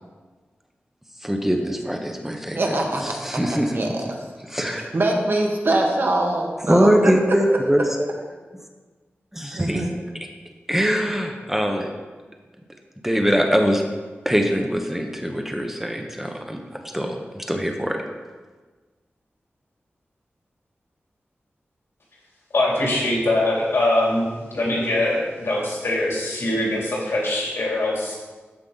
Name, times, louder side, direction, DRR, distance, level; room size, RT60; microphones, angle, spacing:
voice 1, 1.2-2.8 3.0-4.0 4.5-4.8 6.7-8.1 9.3-9.9 10.7-11.9 13.0-13.8 14.2-16.6 16.9-18.0, equal, 5° right, 3 dB, 0.9 m, -22 dB
voice 2, 2.5-3.2 3.7-3.9 4.8-7.1 9.5-9.9, right 2 dB, 55° right, 1 dB, 1.5 m, -23 dB
voice 3, 22.5-28.2, left 1 dB, 75° left, -4 dB, 3.0 m, -22 dB
13.0 x 5.2 x 4.0 m, 1.4 s
wide cardioid pair, 85°, 4 cm